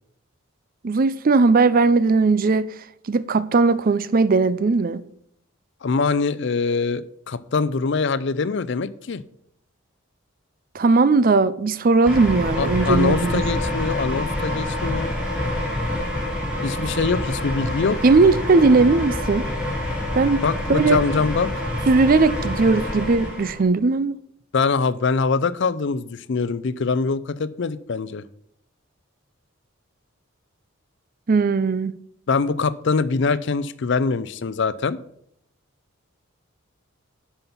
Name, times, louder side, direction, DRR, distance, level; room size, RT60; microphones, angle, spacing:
voice 1, 0.8-2.7 3.1-5.0 10.7-13.4 18.0-19.5 20.1-20.4 20.7-21.0 21.9-24.2 31.3-32.0, right 3 dB, 40° right, 0.4 m, -18 dB
voice 2, 5.8-9.2 12.6-15.1 16.6-18.0 20.4-21.5 24.5-28.2 32.3-35.0, left 4 dB, 55° left, 0.5 m, -23 dB
sound 1, 12.0-23.6, left 1 dB, 5° right, 2.7 m, -27 dB
11.0 x 5.7 x 5.8 m
head